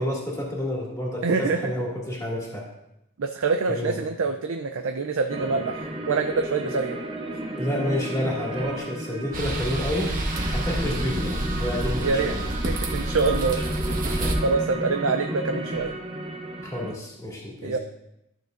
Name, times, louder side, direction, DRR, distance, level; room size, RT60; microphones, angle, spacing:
voice 1, 0.0-2.6 3.7-4.0 6.6-6.7 7.6-10.1 10.5-12.6 14.1-14.5 16.6-17.8, left 1 dB, 15° left, -4 dB, 2.2 m, -29 dB
voice 2, 1.2-1.7 3.2-7.0 12.0-12.3 12.7-13.6 13.9-14.0 14.4-15.9 17.6-17.8, right 4 dB, 70° right, 6 dB, 0.5 m, -25 dB
sound 1, 5.3-16.9, right 1 dB, 25° right, 0.8 m, -32 dB
sound 2, 9.3-14.3, right 1 dB, 40° right, 1.1 m, -29 dB
13.0 x 6.5 x 2.5 m, 0.85 s
head